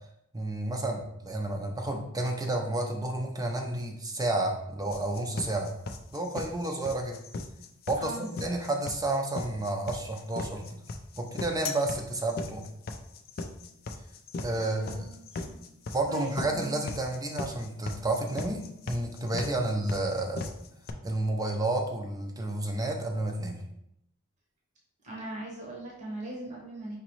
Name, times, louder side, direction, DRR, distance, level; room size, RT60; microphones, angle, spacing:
voice 1, 0.3-5.7 6.1-7.2 7.9-10.6 11.2-12.6 14.4-15.1 15.9-18.6 18.9-20.5 21.0-23.6, right 2 dB, 15° right, 2 dB, 0.5 m, -31 dB
sound 1, 4.9-20.9, left 3 dB, 45° left, 0.4 m, -38 dB
voice 2, 8.0-8.3 14.6-15.5 16.1-16.8 19.5-19.7 25.0-27.0, right 2 dB, 35° right, -3 dB, 0.9 m, -40 dB
5.0 x 2.9 x 3.0 m, 0.76 s
head